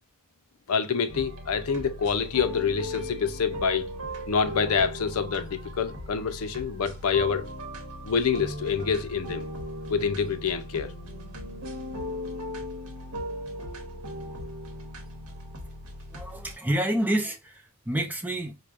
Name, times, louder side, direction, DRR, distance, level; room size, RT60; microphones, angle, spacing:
voice 1, 0.7-3.9 4.3-7.5 8.0-9.5 9.9-10.9, left 6 dB, 80° left, 0.5 m, -26 dB
sound 1, 1.1-16.6, equal, 90° right, 1.0 m, -38 dB
voice 2, 16.1-18.6, right 1 dB, 10° right, 0.5 m, -28 dB
4.7 x 2.2 x 2.4 m
head